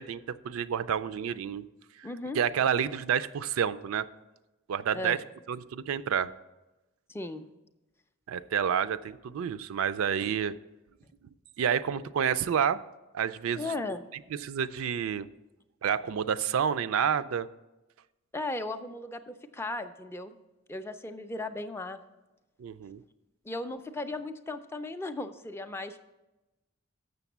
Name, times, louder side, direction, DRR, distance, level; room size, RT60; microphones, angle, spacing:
voice 1, 0.0-1.7 2.3-4.1 4.7-5.2 5.5-6.3 8.3-10.5 11.6-12.8 13.1-13.6 14.4-15.3 15.8-17.5 22.6-23.0, right 8 dB, 70° right, 14 dB, 0.3 m, -29 dB
voice 2, 2.0-2.4 4.9-5.2 7.1-7.5 13.6-14.0 18.3-20.4 20.7-22.0 23.5-26.0, left 2 dB, 10° left, 8 dB, 0.3 m, -36 dB
6.8 x 6.6 x 7.1 m, 1.0 s
head